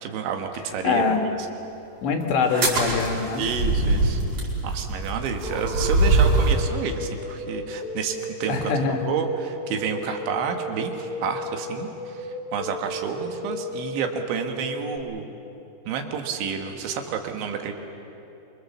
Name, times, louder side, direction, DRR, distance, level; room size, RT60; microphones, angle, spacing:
voice 1, 0.0-1.4 3.4-4.2 4.6-15.3 15.9-17.7, right 6 dB, 80° right, 5 dB, 3.9 m, -30 dB
voice 2, 0.8-1.2 2.0-3.4 8.5-9.0, left 5 dB, 70° left, 4 dB, 3.8 m, -23 dB
sound 1, 2.4-6.7, right 2 dB, 45° right, 6.5 m, -23 dB
sound 2, 5.4-15.0, left 1 dB, 30° right, 2.2 m, -34 dB
27.0 x 23.0 x 7.3 m, 2.9 s
omnidirectional pair, 5.3 m